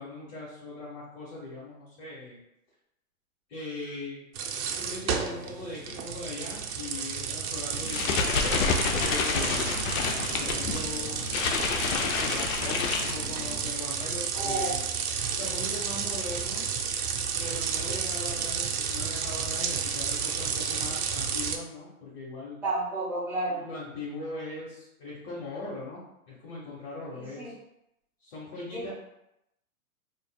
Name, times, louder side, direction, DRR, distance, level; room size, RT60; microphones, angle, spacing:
voice 1, 0.0-2.4 3.5-4.2 4.7-9.7 10.4-11.2 11.9-14.8 15.3-16.6 17.4-22.6 23.5-26.0 26.3-27.5 28.2-28.9, left 2 dB, 40° left, -7 dB, 1.1 m, -40 dB
sound 1, 4.3-21.6, right 6 dB, 80° right, 0.7 m, -32 dB
sound 2, 7.7-13.6, left 5 dB, 70° left, 0.6 m, -29 dB
voice 2, 14.3-14.7 17.9-18.0 22.6-23.6 27.2-27.5 28.7-28.9, right 2 dB, 5° right, -9 dB, 1.1 m, -31 dB
4.6 x 2.5 x 2.2 m, 0.82 s
hypercardioid pair, 140°, 44 cm